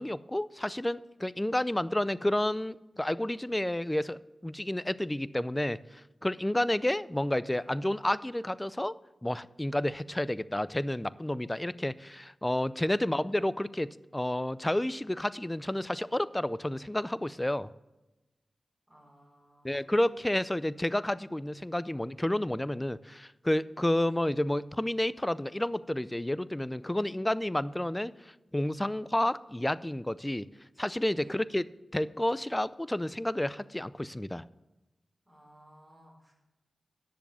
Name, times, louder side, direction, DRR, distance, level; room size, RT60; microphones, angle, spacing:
voice 1, 0.0-5.8 6.2-8.9 9.2-17.7 19.6-28.1 28.5-30.5 30.8-31.6 31.9-34.4, left 1 dB, 15° left, 17 dB, 0.4 m, -30 dB
voice 2, 12.8-13.4 18.9-20.0 24.0-24.2 31.1-31.4 35.2-36.3, equal, 5° right, -4 dB, 4.5 m, -59 dB
10.0 x 7.1 x 6.9 m, 1.0 s
cardioid pair, 55°, 0 cm